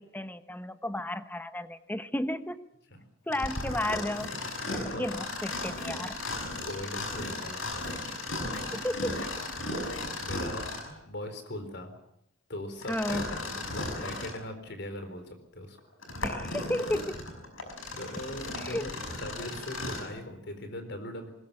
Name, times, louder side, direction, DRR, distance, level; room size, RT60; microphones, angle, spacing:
voice 1, 0.0-2.6 3.3-4.3 4.7-6.2 8.7-9.2 12.9-13.3 16.2-17.3 18.6-18.9, left 1 dB, 10° left, 11 dB, 1.0 m, -33 dB
Mechanisms, 3.3-11.0 12.8-14.4 15.0-15.1 15.8-20.1, left 2 dB, 75° left, 5.5 m, -36 dB
voice 2, 4.6-5.1 6.6-7.9 10.2-11.9 12.5-15.8 18.0-18.9 19.2-21.3, left 1 dB, 55° left, 8 dB, 4.2 m, -40 dB
20.5 x 20.0 x 8.8 m, 0.79 s
head